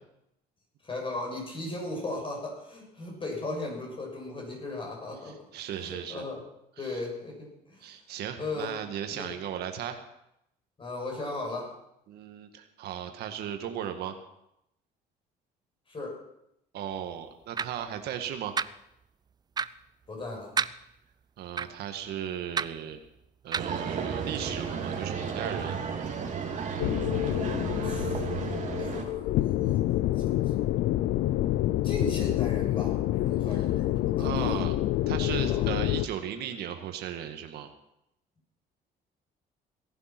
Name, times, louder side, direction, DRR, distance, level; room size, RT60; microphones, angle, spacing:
voice 1, 0.8-5.4 5.9-6.4 6.8-7.9 8.4-8.7 9.1-9.3 10.8-11.7 15.9-16.2 20.1-20.5 27.8-28.2 28.8-29.9 30.2-30.3 31.8-34.6 35.4-35.7, left 2 dB, 30° left, 0 dB, 6.9 m, -37 dB
voice 2, 5.2-6.3 6.8-7.0 7.8-10.0 12.1-14.2 16.7-18.5 21.4-23.0 23.4-25.8 34.2-34.7 35.1-37.7, right 9 dB, 75° right, 6 dB, 1.7 m, -36 dB
Wall Clock hands sound, 17.6-17.7 18.6-18.7 19.6-19.7 20.6-20.7 21.6-21.7 22.6-22.7 23.5-23.7, right 6 dB, 25° right, 0.4 m, -28 dB
sound 1, 23.5-29.0, right 6 dB, 45° right, 3.2 m, -33 dB
sound 2, 26.8-36.1, left 14 dB, 80° left, 0.6 m, -27 dB
18.0 x 11.5 x 6.0 m, 0.80 s
cardioid pair, 110°, 17 cm